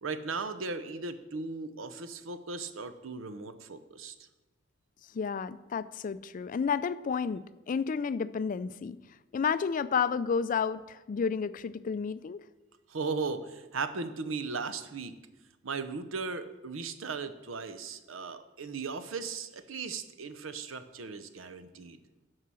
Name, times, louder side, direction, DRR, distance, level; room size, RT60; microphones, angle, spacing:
voice 1, 0.0-4.1 12.9-15.1 15.6-22.0, right 4 dB, 85° right, 11 dB, 0.7 m, -37 dB
voice 2, 5.1-9.0 9.3-12.4, left 6 dB, 40° left, 15 dB, 0.3 m, -31 dB
11.5 x 4.8 x 6.2 m, 1.1 s
head